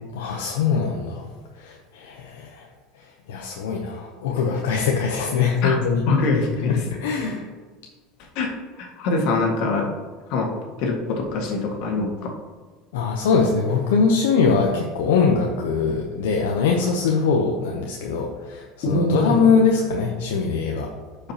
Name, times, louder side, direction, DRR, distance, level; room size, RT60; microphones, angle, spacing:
voice 1, 0.1-1.2 1.6-2.6 3.3-6.0 6.6-7.5 12.9-20.9, left 5 dB, 85° left, 0 dB, 0.8 m, -22 dB
voice 2, 6.1-6.8 8.4-8.5 8.8-9.9 10.3-10.5 10.8-12.1 18.8-19.4, left 2 dB, 65° left, 0 dB, 1.7 m, -23 dB
11.5 x 5.1 x 2.9 m, 1.4 s
supercardioid pair, 100°, 0 cm